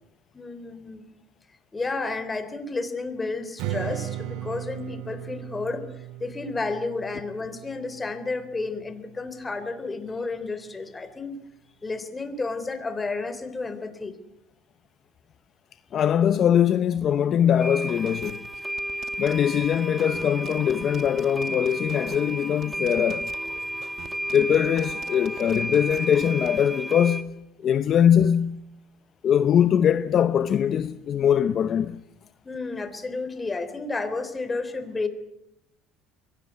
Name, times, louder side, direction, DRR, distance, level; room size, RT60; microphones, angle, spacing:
voice 1, 0.3-1.1 1.7-11.3 11.8-14.2 32.4-35.1, left 3 dB, 20° left, 3.5 m, -31 dB
Strum, 3.6-8.8, right 13 dB, 70° right, 2.0 m, -37 dB
voice 2, 15.9-18.5 19.2-23.3 24.3-27.3 27.6-28.6 29.2-32.0, left 9 dB, 45° left, 0.8 m, -22 dB
sound 1, 17.6-27.2, right 1 dB, 5° right, 2.1 m, -33 dB
sound 2, 18.1-26.6, right 8 dB, 45° right, 2.1 m, -45 dB
23.5 x 18.0 x 9.7 m
supercardioid pair, 110°, 0 cm